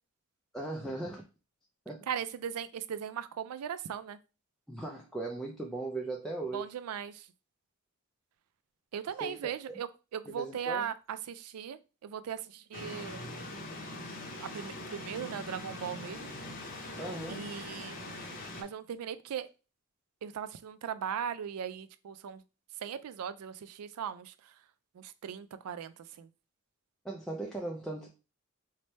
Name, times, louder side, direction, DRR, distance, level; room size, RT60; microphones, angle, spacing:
voice 1, 0.5-1.2 1.9-2.0 4.7-6.6 9.2-9.8 10.3-10.9 17.0-17.4 27.0-28.1, right 2 dB, ahead, -2 dB, 0.4 m, -38 dB
voice 2, 2.1-4.2 6.5-7.3 8.9-13.3 14.4-16.3 17.3-19.5 20.2-22.4 22.8-24.6 24.9-26.3, right 8 dB, 85° right, 13 dB, 0.3 m, -39 dB
sound 1, 12.7-18.6, left 1 dB, 40° left, 0.7 m, -42 dB
3.2 x 2.1 x 4.0 m, 0.31 s
head